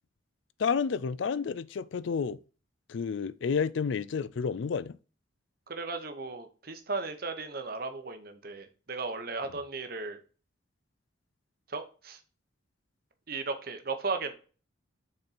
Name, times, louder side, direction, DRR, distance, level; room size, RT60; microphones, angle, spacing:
voice 1, 0.6-2.4 2.9-4.9, left 6 dB, 65° left, 0.4 m, -30 dB
voice 2, 5.7-10.2 11.7-12.2 13.3-14.3, right 4 dB, 45° right, 0.9 m, -36 dB
6.5 x 4.3 x 4.1 m
head